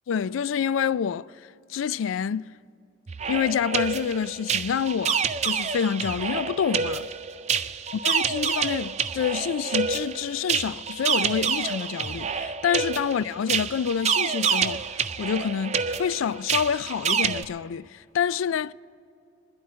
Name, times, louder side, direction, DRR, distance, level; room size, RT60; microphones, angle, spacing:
voice 1, 0.1-1.3 1.7-2.4 3.3-7.1 7.9-14.8 15.2-18.7, left 7 dB, 75° left, 0.3 m, -27 dB
sound 1, 3.1-17.4, right 6 dB, 35° right, 0.4 m, -28 dB
28.0 x 11.0 x 4.3 m
head